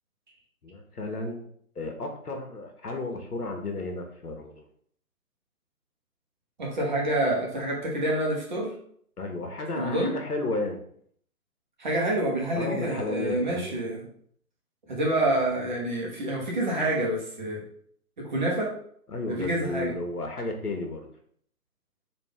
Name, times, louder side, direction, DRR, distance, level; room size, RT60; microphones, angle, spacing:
voice 1, 0.6-1.5 1.7-4.6 9.2-10.8 12.5-13.8 19.1-21.1, left 2 dB, 75° left, 3 dB, 1.2 m, -33 dB
voice 2, 6.6-8.7 9.7-10.1 11.8-14.0 14.9-17.6 18.2-18.7 19.3-19.9, right 1 dB, 30° right, -2 dB, 1.0 m, -27 dB
4.1 x 2.8 x 3.5 m, 0.63 s
figure-of-eight pair, 150°, 46 cm